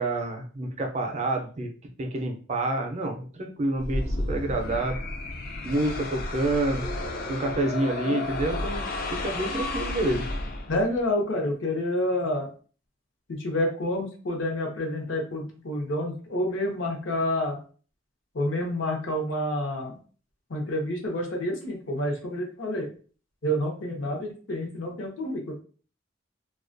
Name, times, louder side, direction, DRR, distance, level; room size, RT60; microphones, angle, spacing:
voice 1, 0.0-1.7 2.0-5.0 5.6-6.8 7.3-8.9 9.1-10.3, right 2 dB, 35° right, 4 dB, 0.4 m, -28 dB
sound 1, 3.8-11.0, left 2 dB, 50° left, 0.4 m, -32 dB
voice 2, 10.7-12.5 13.3-17.6 18.3-20.0 20.5-22.9 23.4-25.6, left 1 dB, 75° left, 1 dB, 0.7 m, -28 dB
2.2 x 2.2 x 2.5 m, 0.39 s
head